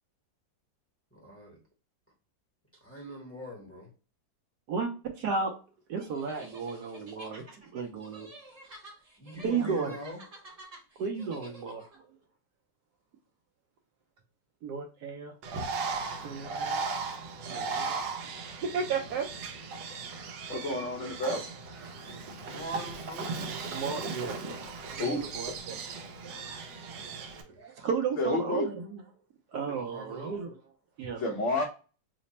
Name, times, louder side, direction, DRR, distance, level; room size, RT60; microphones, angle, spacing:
voice 1, 1.1-1.6 2.8-3.9 9.2-10.2 22.5-23.4 29.8-30.3, equal, 10° left, -2 dB, 0.7 m, -42 dB
voice 2, 4.7-5.5 5.9-8.3 9.4-9.9 11.0-11.9 14.6-15.3 16.2-16.8 17.5-18.0 18.6-19.3 19.6-19.8 23.7-24.4 25.0-26.0 26.2-29.0 29.5-30.6 31.0-31.2, right 5 dB, 70° right, 4 dB, 1.1 m, -34 dB
sound 1, 6.0-12.0, right 1 dB, 35° right, 0.6 m, -50 dB
Bird, 15.4-27.4, right 4 dB, 90° right, 1.3 m, -37 dB
voice 3, 20.5-21.4 25.0-25.2 28.2-28.7 31.2-31.6, left 2 dB, 75° left, 1 dB, 0.6 m, -29 dB
3.3 x 2.0 x 4.0 m, 0.35 s
omnidirectional pair, 1.9 m